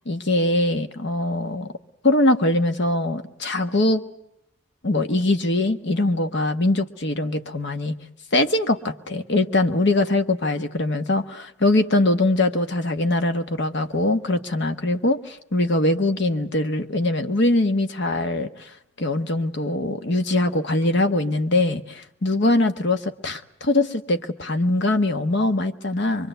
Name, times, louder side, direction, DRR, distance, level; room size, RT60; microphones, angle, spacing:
voice 1, 0.1-1.7 2.0-4.0 4.8-7.9 8.3-18.7 19.0-26.3, left 2 dB, 55° left, 8 dB, 1.3 m, -22 dB
24.5 x 24.0 x 8.0 m, 0.76 s
head